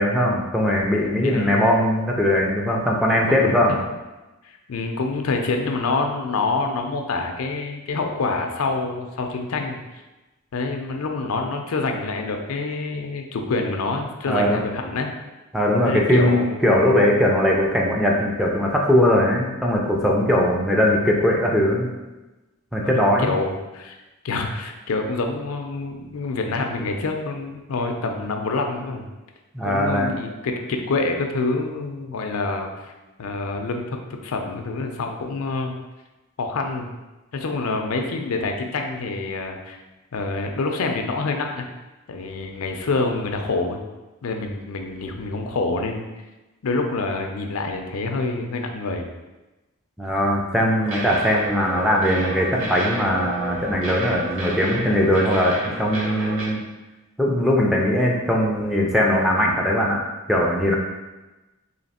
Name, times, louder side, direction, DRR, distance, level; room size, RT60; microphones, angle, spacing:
voice 1, 0.0-3.8 14.3-14.6 15.5-21.9 22.7-23.3 29.5-30.1 50.0-56.6 57.2-60.0 60.3-60.8, equal, ahead, -3 dB, 0.4 m, -20 dB
voice 2, 1.0-1.5 3.3-3.8 4.4-9.8 10.5-15.1 15.8-16.7 22.8-24.0 24.2-29.0 29.6-32.9 33.2-35.7 36.4-36.9 37.3-39.8 40.1-41.7 42.1-43.8 44.2-46.1 46.6-49.1, left 3 dB, 75° left, 3 dB, 0.5 m, -27 dB
sound 1, 50.8-56.4, right 1 dB, 65° right, 1.2 m, -32 dB
3.2 x 2.8 x 4.1 m, 1.1 s
head